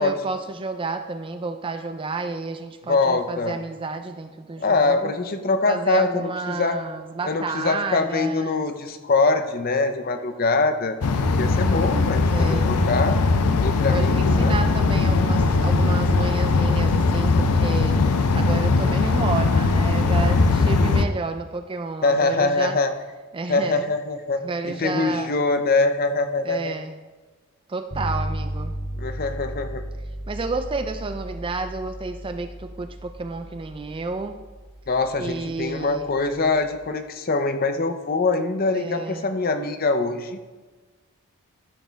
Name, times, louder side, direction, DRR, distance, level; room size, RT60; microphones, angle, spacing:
voice 1, 0.0-5.1 5.7-8.6 12.3-12.8 13.9-18.0 18.3-22.8 23.3-23.9 24.4-25.4 26.4-27.0 27.7-28.8 30.3-34.4 35.2-36.1 38.7-39.3, right 3 dB, 25° right, 8 dB, 0.4 m, -31 dB
voice 2, 2.9-3.6 4.6-6.8 7.2-11.0 11.4-13.2 13.6-14.6 22.0-22.9 23.5-26.7 29.0-29.8 34.9-40.5, left 3 dB, 40° left, 8 dB, 0.6 m, -23 dB
sound 1, 11.0-21.0, left 3 dB, 85° left, 0.6 m, -20 dB
sound 2, 27.9-36.9, equal, 65° left, 2.1 m, -35 dB
12.0 x 6.5 x 3.5 m, 1.3 s
head